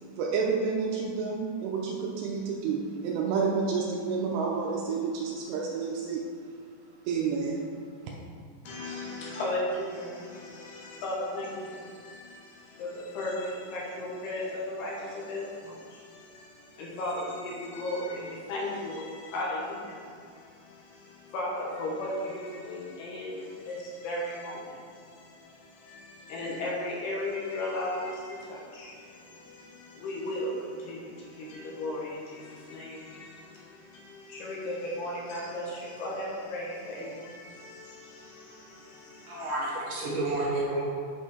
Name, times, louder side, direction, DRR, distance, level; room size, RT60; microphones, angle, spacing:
voice 1, 0.2-6.2 7.1-7.7 8.0-8.1, right 5 dB, 85° right, -2 dB, 2.7 m, -29 dB
voice 2, 8.7-39.5, left 1 dB, 70° left, -5 dB, 3.4 m, -36 dB
voice 3, 39.3-40.8, right 2 dB, 65° right, -6 dB, 2.3 m, -30 dB
8.4 x 5.6 x 4.4 m, 2.2 s
omnidirectional pair, 5.0 m